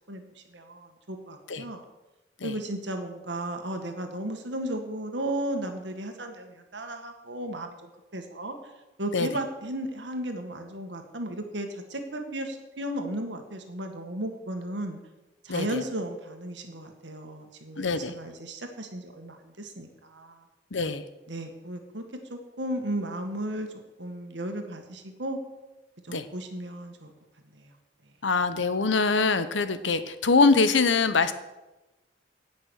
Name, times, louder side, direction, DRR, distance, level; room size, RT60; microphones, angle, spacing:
voice 1, 0.1-1.8 2.4-8.6 9.0-15.0 15.4-20.4 21.3-22.0 22.3-23.7 24.0-25.4 26.0-27.1 27.5-27.7, right 1 dB, 75° right, 5 dB, 1.8 m, -35 dB
voice 2, 15.5-15.8 17.8-18.1 20.7-21.0 26.1-26.2 28.2-31.3, left 4 dB, 85° left, 12 dB, 0.9 m, -23 dB
17.0 x 6.2 x 6.5 m, 1.1 s
head